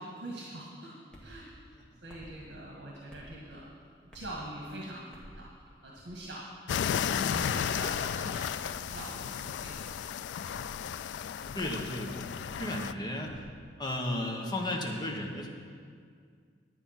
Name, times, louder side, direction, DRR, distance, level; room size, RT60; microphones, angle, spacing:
voice 1, 0.0-1.4 2.0-3.7 4.1-5.4 5.8-8.5 8.9-9.9, right 1 dB, 70° right, -3 dB, 1.6 m, -44 dB
sound 1, 1.1-1.4 2.1-2.4 3.1-3.3 4.1-4.4 5.1-5.4 6.0-6.3 6.9-7.1 7.8-8.1 8.7-9.1 9.7-9.9 10.5-10.8 11.4-11.6 12.3-12.6 13.2-13.5, equal, 5° left, 1.7 m, -51 dB
sound 2, 6.7-12.9, left 8 dB, 80° left, 0.3 m, -34 dB
Boom / Shatter / Crushing, 7.3-11.3 11.8-11.9, right 2 dB, 45° right, 0.5 m, -48 dB
voice 2, 11.5-13.5 13.8-15.5, left 1 dB, 25° left, 1 dB, 1.2 m, -34 dB
10.5 x 8.8 x 5.8 m, 2.1 s
head